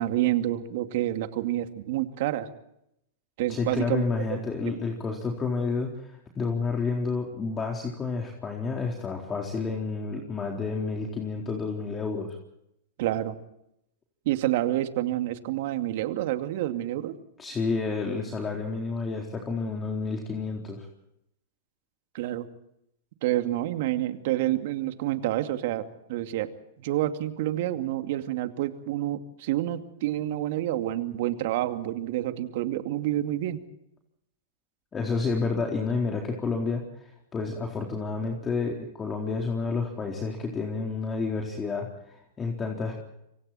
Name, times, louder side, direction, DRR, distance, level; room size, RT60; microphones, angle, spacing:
voice 1, 0.0-2.5 3.4-4.0 4.6-4.7 13.0-13.4 14.3-17.2 22.1-22.5 23.2-25.8 26.1-26.5 26.8-33.6, right 14 dB, 60° right, 7 dB, 2.4 m, -28 dB
voice 2, 3.5-12.4 17.4-20.9 34.9-42.9, left 4 dB, 20° left, 1 dB, 4.1 m, -30 dB
28.0 x 24.5 x 4.4 m, 0.79 s
hypercardioid pair, 115°, 0 cm